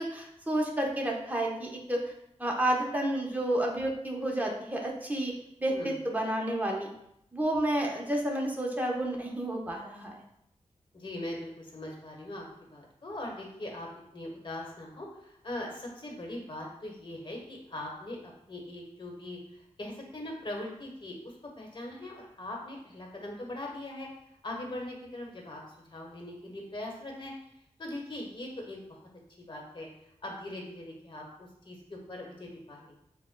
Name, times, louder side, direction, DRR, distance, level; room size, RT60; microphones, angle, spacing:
voice 1, 0.0-2.1 2.4-5.3 5.6-6.9 7.3-10.2, right 1 dB, 15° right, -1 dB, 1.0 m, -30 dB
voice 2, 10.9-24.1 24.4-25.6 25.9-27.3 27.8-28.8 29.5-29.9 30.2-33.0, left 1 dB, 40° left, -1 dB, 1.3 m, -41 dB
6.3 x 2.4 x 2.3 m, 0.77 s
cardioid pair, 55°, 12 cm